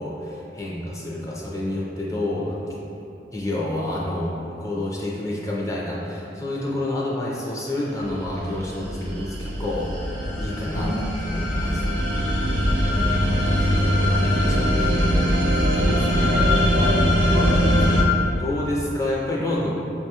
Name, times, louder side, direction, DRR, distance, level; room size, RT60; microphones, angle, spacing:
voice 1, 0.0-2.9 3.3-9.9 10.4-10.9 11.2-12.3 12.6-15.7 16.8-16.9 17.6-19.7, left 1 dB, 15° left, -5 dB, 0.4 m, -29 dB
sound 1, 8.0-18.0, equal, 65° right, 0.6 m, -21 dB
voice 2, 15.8-18.0, equal, 75° left, -4 dB, 0.7 m, -29 dB
5.3 x 2.2 x 2.8 m, 2.9 s
head